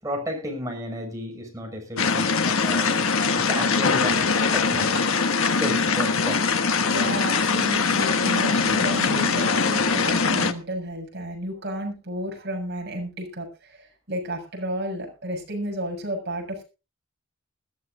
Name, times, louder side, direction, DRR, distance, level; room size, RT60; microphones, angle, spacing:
voice 1, 0.0-3.0 3.4-5.0 5.5-6.4, equal, 15° right, 1 dB, 6.1 m, -33 dB
sound 1, 2.0-10.5, left 5 dB, 75° left, 1.2 m, -22 dB
voice 2, 6.9-16.6, right 1 dB, 50° right, 1 dB, 6.9 m, -32 dB
21.0 x 13.5 x 2.6 m, 0.31 s
head